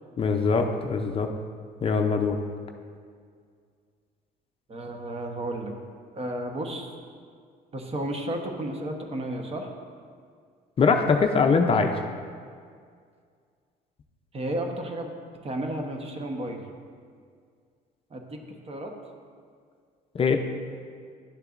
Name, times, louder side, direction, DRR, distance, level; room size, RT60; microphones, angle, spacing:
voice 1, 0.2-1.3 1.8-2.4 10.8-11.9 20.1-20.4, left 5 dB, 35° left, 4 dB, 0.5 m, -22 dB
voice 2, 4.7-5.8 6.1-6.9 7.7-9.7 14.3-15.1 15.4-16.6 18.1-18.4 18.7-18.9, right 1 dB, 35° right, 3 dB, 1.0 m, -32 dB
11.5 x 6.6 x 2.5 m, 2.1 s
cardioid pair, 110°, 17 cm